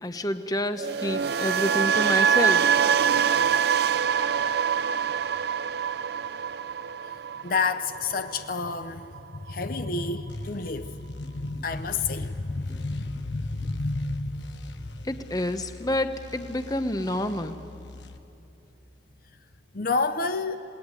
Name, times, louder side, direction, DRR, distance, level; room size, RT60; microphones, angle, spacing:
voice 1, 0.0-2.7 11.6-11.7 12.6-12.8 15.0-17.6, left 1 dB, 20° left, 0.9 m, -29 dB
sound 1, 0.8-8.9 9.1-9.5, right 7 dB, 55° right, 0.5 m, -25 dB
voice 2, 7.4-14.6 19.7-20.6, left 3 dB, 50° left, 0.8 m, -29 dB
sound 2, 10.3-18.2, left 3 dB, 70° left, 1.2 m, -45 dB
27.5 x 18.5 x 9.8 m
head